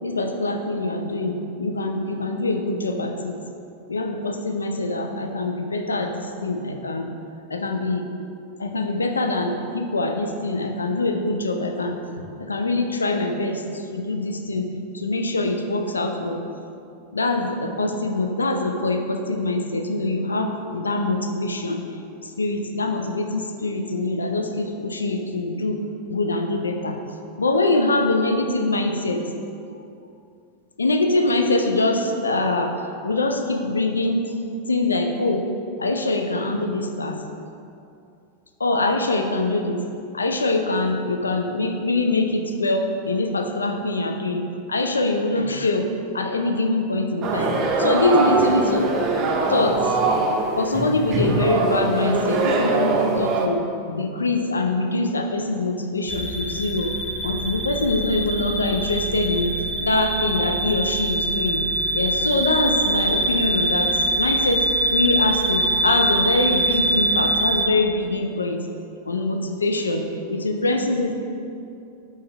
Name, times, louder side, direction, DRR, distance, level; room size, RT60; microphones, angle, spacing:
voice 1, 0.0-3.4 3.9-7.1 7.5-8.1 8.6-12.0 12.4-14.7 14.9-16.4 17.1-21.8 22.2-25.8 26.1-27.0 27.4-29.2 30.8-34.3 34.7-35.4 35.8-37.2 38.6-39.8 40.1-45.9 46.1-49.0 49.5-49.8 50.6-56.9 57.2-59.5 59.8-61.7 61.9-64.6 64.9-68.6 69.1-71.1, left 2 dB, 75° left, 4 dB, 0.5 m, -24 dB
sound 1, 47.2-53.5, right 3 dB, 30° right, 0.6 m, -22 dB
sound 2, 56.1-67.7, right 1 dB, 10° left, 0.6 m, -24 dB
5.4 x 3.3 x 5.3 m, 2.5 s
figure-of-eight pair, 90°, 0 cm